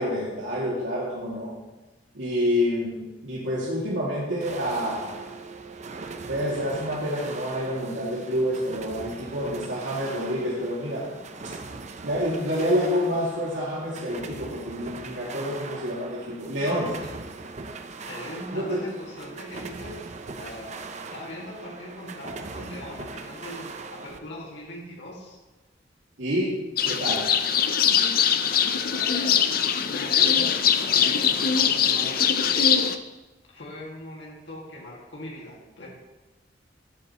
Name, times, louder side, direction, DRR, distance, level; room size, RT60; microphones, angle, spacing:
voice 1, 0.0-1.5 2.1-5.3 6.3-11.1 12.0-16.9 18.5-18.8 26.2-26.6 26.8-27.3, equal, 85° right, -7 dB, 2.3 m, -28 dB
sound 1, 4.4-24.2, right 4 dB, 35° right, 0.6 m, -40 dB
voice 2, 16.6-17.1 18.0-25.4 28.9-32.9 33.5-35.9, left 1 dB, 65° left, -3 dB, 2.0 m, -41 dB
sound 2, 26.8-33.0, left 7 dB, 50° left, 0.5 m, -22 dB
12.5 x 9.0 x 3.0 m, 1.1 s
head